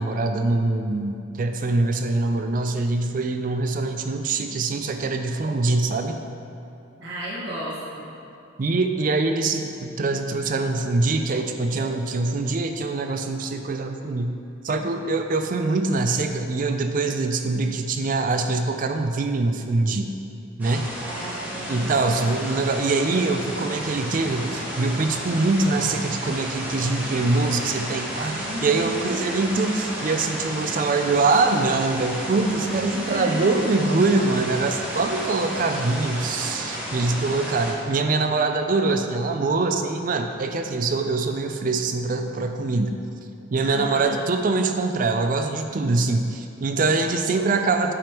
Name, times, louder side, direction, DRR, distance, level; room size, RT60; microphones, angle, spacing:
voice 1, 0.0-6.2 8.6-14.3 14.6-20.1 20.6-20.9 21.7-42.9 43.5-47.9, right 3 dB, 40° right, 6 dB, 0.4 m, -24 dB
voice 2, 7.0-8.1 21.0-21.9 28.3-29.2 32.9-33.5 43.6-44.2, equal, 60° right, -9 dB, 1.6 m, -33 dB
sound 1, 20.6-37.7, equal, 10° right, 0.9 m, -32 dB
8.5 x 5.2 x 3.0 m, 2.7 s
head